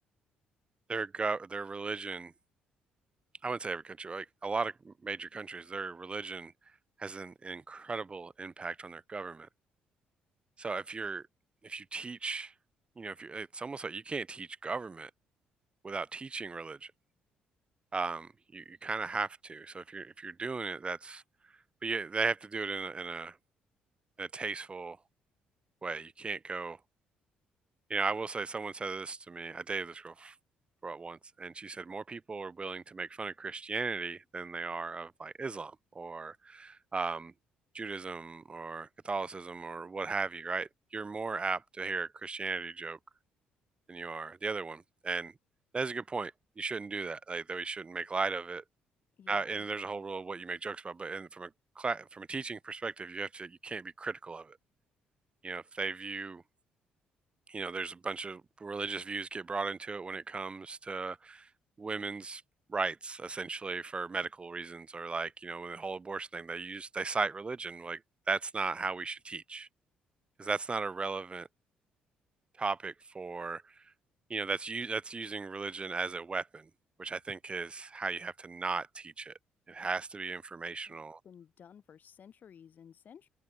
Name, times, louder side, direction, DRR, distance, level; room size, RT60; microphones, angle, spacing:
voice 1, 0.9-2.3 3.4-6.5 7.0-9.5 10.6-11.2 11.6-12.5 13.0-15.1 15.8-16.9 17.9-21.2 21.8-23.4 24.2-25.0 25.8-26.8 27.9-30.4 30.8-37.3 37.7-43.0 43.9-45.3 45.7-48.6 49.3-51.5 51.8-54.6 55.4-56.4 57.5-61.5 61.8-62.4 62.7-68.0 68.3-69.7 70.4-71.5 72.6-73.9 74.3-76.7 77.0-79.3 79.7-81.2, right 4 dB, 30° right, 0.7 m, -37 dB
voice 2, 49.2-49.7 80.9-81.0 81.2-83.3, left 8 dB, 55° left, 0.9 m, -55 dB
supercardioid pair, 60°, 4 cm